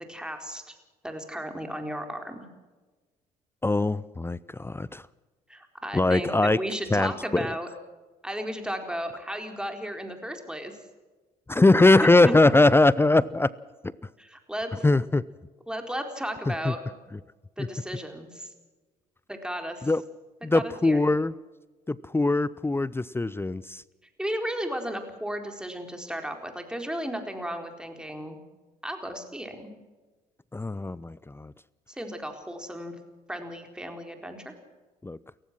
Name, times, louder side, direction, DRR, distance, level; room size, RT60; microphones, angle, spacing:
voice 1, 0.1-0.8 1.0-2.5 5.5-7.7 8.2-10.7 12.0-12.3 14.2-14.9 15.7-16.8 17.6-18.5 19.3-19.9 20.5-21.0 24.2-28.4 28.8-29.7 31.9-33.0 33.3-34.5, equal, 5° right, 5 dB, 4.2 m, -34 dB
voice 2, 3.6-5.0 5.9-6.6 6.9-7.5 11.5-13.5 14.8-15.2 16.5-16.7 17.6-17.7 19.8-20.0 20.4-21.3 21.9-23.8 30.5-31.5 35.0-35.2, left 2 dB, 10° left, 21 dB, 0.6 m, -21 dB
29.0 x 15.5 x 6.2 m, 1.3 s
figure-of-eight pair, 55°, 20 cm